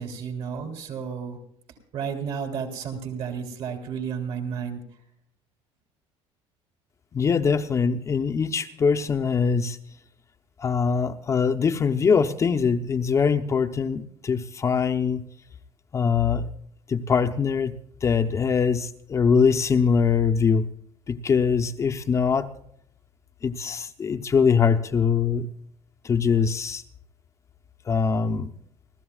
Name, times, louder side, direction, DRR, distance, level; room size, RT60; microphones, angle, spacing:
voice 1, 0.0-1.4 1.9-4.8, right 6 dB, 55° right, 4 dB, 3.5 m, -32 dB
voice 2, 7.1-9.8 10.6-15.2 15.9-16.5 16.9-17.7 18.0-20.7 21.1-22.5 23.4-25.5 26.0-26.8 27.9-28.5, left 6 dB, 25° left, 6 dB, 0.7 m, -22 dB
30.0 x 13.5 x 2.3 m, 0.67 s
cardioid pair, 155°, 11 cm